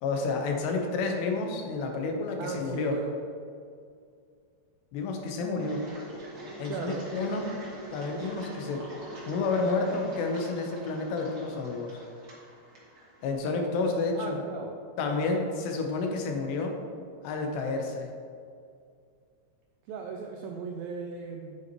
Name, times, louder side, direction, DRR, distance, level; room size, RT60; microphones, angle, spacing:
voice 1, 0.0-3.0 4.9-5.8 6.6-7.5 7.9-8.8 9.3-11.9 13.2-14.4 15.0-16.8 17.2-18.1, left 3 dB, 85° left, 2 dB, 3.1 m, -30 dB
voice 2, 2.4-3.1 6.7-7.1 14.2-14.8 19.9-21.6, right 5 dB, 90° right, 2 dB, 2.0 m, -37 dB
Engine, 5.6-13.3, right 1 dB, 40° right, 1.8 m, -44 dB
8.9 x 8.8 x 3.0 m, 2.3 s
omnidirectional pair, 4.8 m